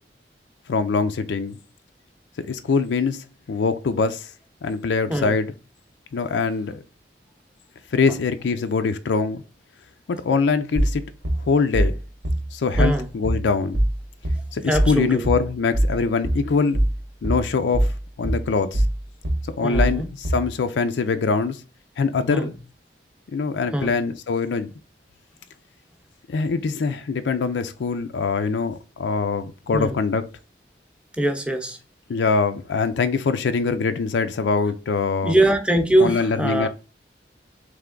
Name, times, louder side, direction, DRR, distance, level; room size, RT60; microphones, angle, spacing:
voice 1, 0.7-1.6 2.4-4.3 4.6-5.5 6.1-6.8 7.9-9.4 10.1-11.0 11.4-12.0 12.5-13.8 14.5-16.8 17.2-18.8 19.5-21.6 22.0-22.5 23.3-24.7 26.3-30.3 32.1-35.4 36.0-36.7, left 4 dB, 85° left, 0.4 m, -23 dB
sound 1, 10.8-20.5, right 1 dB, 80° right, 0.9 m, -23 dB
voice 2, 12.8-13.1 14.6-15.3 19.6-20.1 22.3-22.5 23.7-24.0 29.7-30.0 31.1-31.8 35.2-36.7, right 1 dB, 5° right, 0.6 m, -22 dB
3.4 x 3.2 x 3.7 m
head